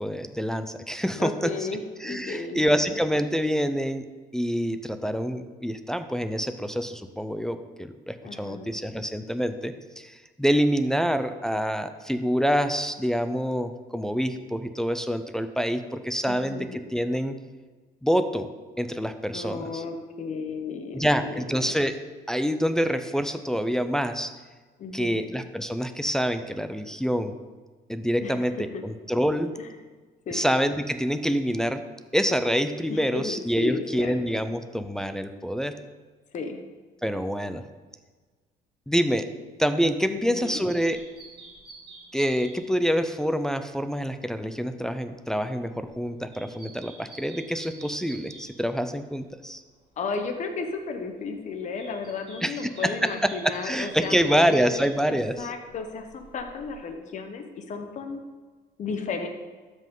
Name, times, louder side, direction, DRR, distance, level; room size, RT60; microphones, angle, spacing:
voice 1, 0.0-1.5 2.0-4.0 4.3-17.3 18.0-18.5 18.8-19.8 20.9-22.0 22.3-24.3 24.9-27.4 27.9-29.5 30.3-31.8 32.1-35.7 37.0-37.6 38.9-39.3 39.6-41.0 42.1-49.6 52.4-55.5, equal, 5° left, 9 dB, 0.4 m, -26 dB
voice 2, 1.2-2.6 2.9-3.0 8.2-8.7 16.3-16.8 19.3-21.7 24.8-25.3 28.2-28.4 28.7-28.8 29.6-29.7 30.3-30.5 32.9-34.1 36.3-36.6 40.1-40.6 50.0-58.2 58.8-59.3, left 4 dB, 45° left, 5 dB, 1.0 m, -34 dB
sound 1, 40.1-49.5 49.7-50.7 51.0-56.9, right 2 dB, 30° right, 2.2 m, -49 dB
13.0 x 5.3 x 3.8 m, 1.4 s
cardioid pair, 110°, 17 cm